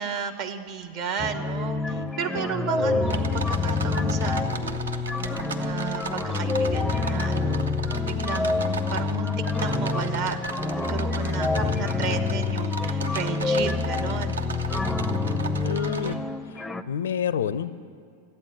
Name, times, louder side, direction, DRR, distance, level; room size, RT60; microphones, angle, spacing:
voice 1, 0.0-4.8 5.6-7.7 8.1-9.3 9.6-10.4 10.8-14.4, right 6 dB, 45° right, 7 dB, 1.0 m, -33 dB
sound 1, 1.2-16.8, left 4 dB, 5° left, 0.5 m, -27 dB
sound 2, 3.0-16.1, right 4 dB, 70° right, 0.7 m, -36 dB
voice 2, 15.6-16.2 16.5-17.7, left 8 dB, 65° left, 17 dB, 0.4 m, -29 dB
13.0 x 8.7 x 8.2 m, 2.3 s
figure-of-eight pair, 90°, 0 cm